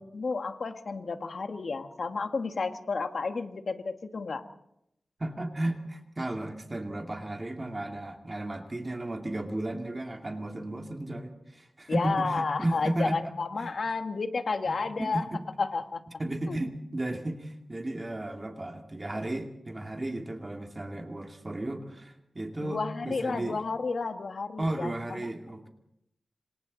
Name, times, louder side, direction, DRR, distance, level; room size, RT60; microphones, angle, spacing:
voice 1, 0.0-4.4 11.9-15.3 15.6-16.0 16.5-16.6 22.6-25.3, left 4 dB, 60° left, 7 dB, 1.7 m, -31 dB
voice 2, 5.2-13.2 13.6-13.7 14.7-15.4 16.2-23.6 24.6-25.7, right 1 dB, 25° right, 4 dB, 2.2 m, -34 dB
27.0 x 26.5 x 4.1 m, 0.80 s
wide cardioid pair, 115°, 0 cm